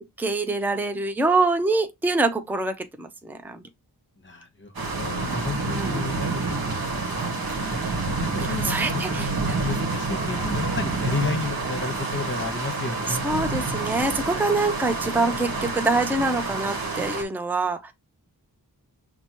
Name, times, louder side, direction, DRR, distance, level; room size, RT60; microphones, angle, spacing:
voice 1, 0.2-3.6 5.7-6.0 8.5-9.3 13.1-17.9, right 3 dB, 5° right, 0.5 m, -25 dB
voice 2, 4.2-6.7 7.1-13.3, left 4 dB, 30° left, 1.0 m, -33 dB
sound 1, 4.7-17.2, right 3 dB, 65° right, 1.1 m, -28 dB
5.9 x 2.2 x 2.9 m
wide cardioid pair, 65°, 39 cm